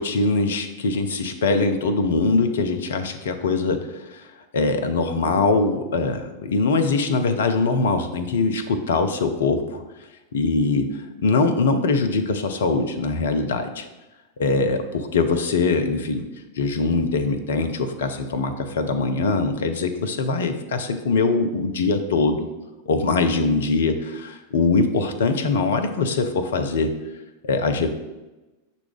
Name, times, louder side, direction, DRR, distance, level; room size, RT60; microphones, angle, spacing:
voice 1, 0.0-4.3 4.5-9.8 10.3-13.9 14.4-16.3 16.6-22.5 22.9-26.9 27.4-27.9, left 3 dB, 60° left, 7 dB, 0.4 m, -22 dB
5.9 x 2.2 x 3.4 m, 1.1 s
figure-of-eight pair, 90°, 0 cm